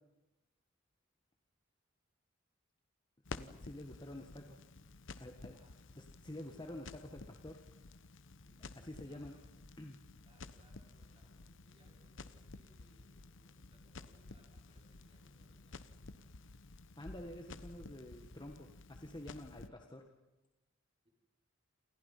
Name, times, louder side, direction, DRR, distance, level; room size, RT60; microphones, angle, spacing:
Crackle, 3.2-19.7, left 3 dB, 65° left, 1.0 m, -53 dB
voice 1, 3.3-4.6 5.1-5.6 6.0-7.6 8.7-9.4 9.8-10.0 17.0-20.1, left 1 dB, 20° left, 3 dB, 1.6 m, -49 dB
voice 2, 3.9-4.3 5.5-5.7 8.4-9.5 10.2-16.4 21.0-21.1, right 1 dB, 25° right, -1 dB, 5.4 m, -71 dB
28.5 x 27.5 x 5.6 m, 1.0 s
head